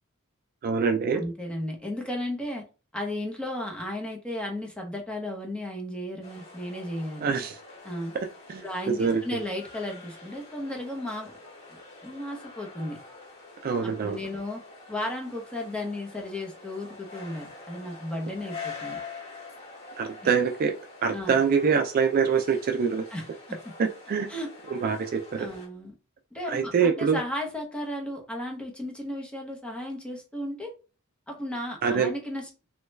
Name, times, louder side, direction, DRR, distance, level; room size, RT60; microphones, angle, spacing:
voice 1, 0.6-1.2 7.2-7.6 8.5-9.4 13.6-14.2 20.0-20.7 21.0-23.0 23.8-24.3 24.7-25.5 26.5-27.2 31.8-32.1, right 6 dB, 40° right, 6 dB, 0.3 m, -25 dB
voice 2, 1.1-2.6 2.9-7.3 7.8-8.1 8.6-11.3 11.7-13.0 13.8-14.6 14.9-19.0 20.2-20.3 21.1-21.4 23.1-23.6 24.3-24.5 25.4-25.9 26.3-30.7 31.3-32.5, left 1 dB, 5° left, 0 dB, 0.7 m, -34 dB
sound 1, 6.2-25.7, left 4 dB, 50° left, 1.6 m, -45 dB
3.1 x 2.3 x 3.2 m, 0.33 s
head